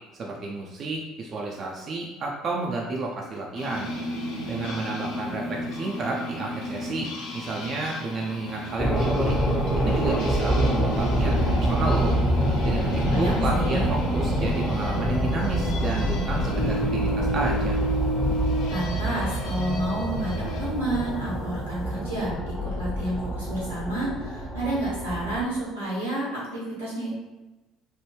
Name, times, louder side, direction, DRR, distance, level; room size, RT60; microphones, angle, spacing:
voice 1, 0.2-3.9 4.5-9.4 9.8-12.1 12.6-17.8, right 2 dB, 40° right, -1 dB, 0.4 m, -31 dB
sound 1, 3.6-20.7, equal, 55° left, 0.6 m, -34 dB
sound 2, 8.8-25.4, right 1 dB, 5° left, 0.6 m, -26 dB
voice 2, 13.0-13.9 18.7-22.3 22.6-27.1, right 1 dB, 85° right, -7 dB, 1.2 m, -30 dB
3.3 x 2.1 x 3.1 m, 1.1 s
figure-of-eight pair, 60°, 0 cm